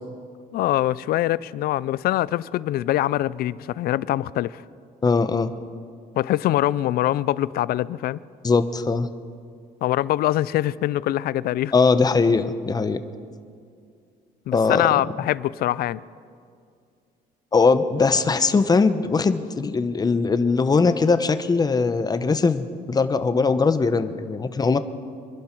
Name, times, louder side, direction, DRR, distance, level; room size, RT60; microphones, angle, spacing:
voice 1, 0.5-4.6 6.2-8.2 9.8-11.7 14.5-16.0, left 14 dB, 65° left, 0.4 m, -23 dB
voice 2, 5.0-5.5 8.4-9.1 11.7-13.0 14.5-14.9 17.5-24.8, left 4 dB, 25° left, 0.8 m, -20 dB
25.5 x 11.5 x 4.5 m
cardioid pair, 110°, 17 cm